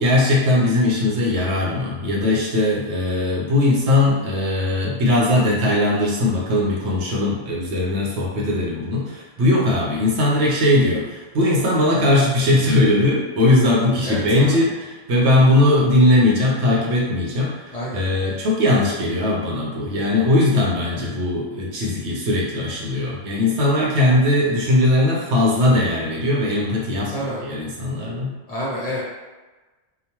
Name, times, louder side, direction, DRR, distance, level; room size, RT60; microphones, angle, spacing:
voice 1, 0.0-28.3, left 1 dB, 80° right, -4 dB, 1.0 m, -19 dB
voice 2, 14.0-14.7 17.7-18.0 27.0-27.4 28.5-29.0, equal, 50° left, -7 dB, 0.5 m, -28 dB
2.9 x 2.1 x 2.9 m, 1.2 s
omnidirectional pair, 1.2 m